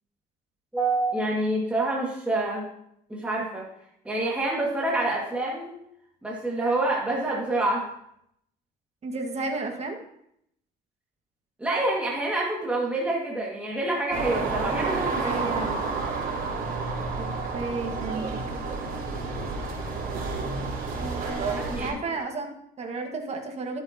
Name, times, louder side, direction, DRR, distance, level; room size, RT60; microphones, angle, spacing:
voice 1, 0.7-2.7 3.1-3.7 4.0-5.7 6.2-7.9 11.6-15.3 15.6-15.8 21.6-22.2, right 2 dB, 5° right, -4 dB, 2.2 m, -27 dB
voice 2, 9.0-10.0 15.2-15.7 17.2-17.3 17.5-18.4 20.9-23.8, right 3 dB, 40° right, 2 dB, 1.9 m, -33 dB
sound 1, 14.1-21.9, right 4 dB, 60° right, 4.0 m, -30 dB
12.5 x 8.2 x 3.0 m, 0.73 s
cardioid pair, 110°, 17 cm